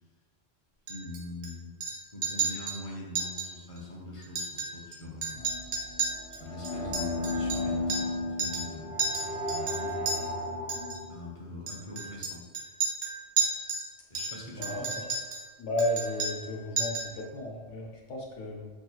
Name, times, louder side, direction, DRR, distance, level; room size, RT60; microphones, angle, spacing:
voice 1, 0.9-1.7 2.1-5.5 6.4-10.2 11.1-12.4 14.1-15.1, left 2 dB, 35° left, -3 dB, 0.7 m, -42 dB
Chink clink, 0.9-1.5 1.8-2.0 2.2-2.8 3.2-3.5 3.8-3.9 4.2-5.0 5.2-8.1 8.4-8.7 9.0-10.2 10.7-11.0 11.7-13.9 14.1-15.5 15.8-16.5 16.8-17.2, right 4 dB, 80° right, 1.1 m, -32 dB
sound 1, 5.4-11.2, left 2 dB, 55° left, 1.5 m, -34 dB
voice 2, 15.6-18.7, left 1 dB, 80° left, -1 dB, 1.0 m, -33 dB
4.6 x 3.0 x 2.3 m, 1.3 s
omnidirectional pair, 1.2 m